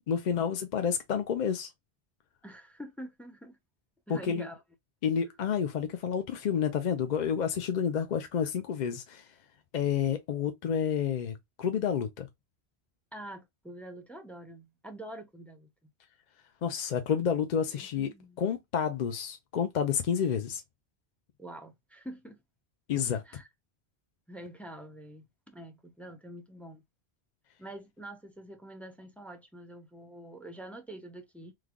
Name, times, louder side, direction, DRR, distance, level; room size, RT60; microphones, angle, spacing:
voice 1, 0.1-1.7 4.1-4.5 5.0-9.2 9.7-12.3 16.6-18.1 18.4-20.6 22.9-23.2, left 7 dB, 55° left, 0.5 m, -29 dB
voice 2, 2.4-3.6 4.1-4.6 13.1-15.7 17.7-18.4 21.4-22.4 23.2-23.5 24.3-26.8 27.6-31.5, right 1 dB, ahead, 0.4 m, -46 dB
3.2 x 2.2 x 3.5 m
omnidirectional pair, 1.1 m